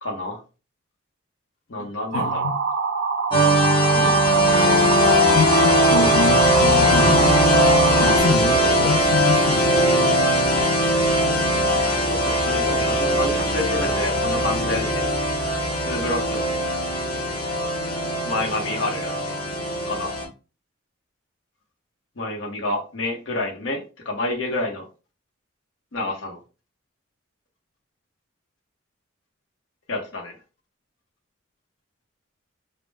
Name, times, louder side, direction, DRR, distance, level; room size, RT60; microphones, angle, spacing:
voice 1, 0.0-0.4 1.7-2.5 3.9-4.1 8.8-9.0 12.1-15.0 15.8-16.5 18.2-19.4 19.8-20.1 22.2-24.8 25.9-26.4 29.9-30.4, left 2 dB, 70° left, 0.8 m, -28 dB
voice 2, 1.7-2.6 5.3-7.4 7.9-9.8, left 4 dB, 90° left, 0.4 m, -26 dB
sound 1, 2.1-8.2, right 5 dB, 75° right, 0.4 m, -25 dB
sound 2, 3.3-20.2, equal, 25° left, 0.7 m, -20 dB
2.1 x 2.1 x 3.3 m
head